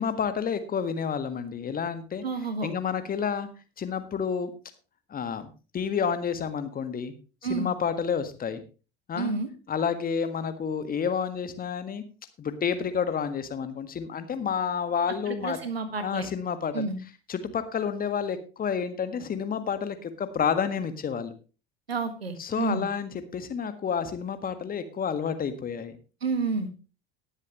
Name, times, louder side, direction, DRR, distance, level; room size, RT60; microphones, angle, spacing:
voice 1, 0.0-2.2 2.6-3.5 3.8-4.5 5.1-7.1 7.5-8.6 9.1-9.3 9.7-12.0 12.4-15.6 16.0-16.9 17.3-21.3 22.4-26.0, left 7 dB, 30° left, 11 dB, 1.7 m, -30 dB
voice 2, 2.2-2.7 7.4-7.7 9.1-9.5 15.3-16.3 16.7-17.0 21.9-22.9 26.2-26.7, right 4 dB, 85° right, 11 dB, 1.6 m, -30 dB
19.0 x 7.5 x 3.1 m, 0.32 s
figure-of-eight pair, 70°, 30 cm